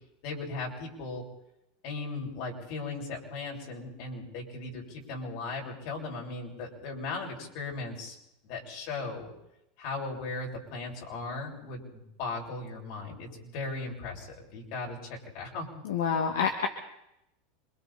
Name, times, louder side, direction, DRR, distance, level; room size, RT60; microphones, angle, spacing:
voice 1, 0.2-1.2 1.8-8.2 8.4-9.3 9.8-15.7, left 3 dB, 60° left, -1 dB, 6.8 m, -37 dB
voice 2, 15.8-16.7, left 6 dB, 85° left, 3 dB, 2.0 m, -27 dB
27.5 x 23.0 x 4.3 m, 0.84 s
supercardioid pair, 115°, 0 cm